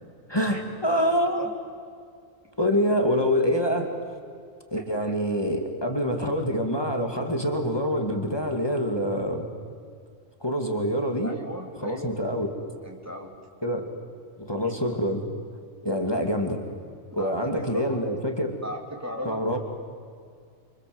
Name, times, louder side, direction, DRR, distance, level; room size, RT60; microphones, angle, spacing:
voice 1, 0.3-1.4 2.6-3.9 4.7-9.5 10.4-11.3 11.8-12.5 13.6-13.9 14.4-15.2 15.8-16.6 17.1-18.5 19.2-19.6, equal, 20° left, 3 dB, 2.5 m, -26 dB
voice 2, 0.9-1.5 4.8-4.9 11.2-12.1 12.8-13.3 17.2-18.0 18.6-19.4, equal, 10° right, 0 dB, 3.3 m, -37 dB
28.0 x 26.5 x 7.9 m, 2.2 s
omnidirectional pair, 1.4 m